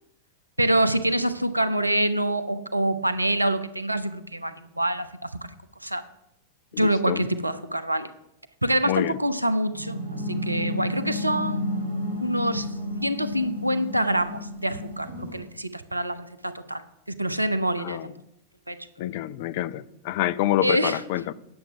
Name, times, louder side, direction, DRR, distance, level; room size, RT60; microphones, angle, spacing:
voice 1, 0.6-5.3 5.8-6.0 6.8-8.1 8.6-10.0 10.3-11.7 12.2-12.7 13.0-18.1 18.7-18.8 20.6-21.0, right 1 dB, 85° right, 0.6 m, -26 dB
voice 2, 6.7-7.2 8.8-9.2 17.8-18.1 19.0-21.3, left 14 dB, 50° left, 0.4 m, -27 dB
sound 1, 9.7-15.4, left 1 dB, 90° left, 2.9 m, -31 dB
9.5 x 7.2 x 5.8 m
figure-of-eight pair, 90°, 0 cm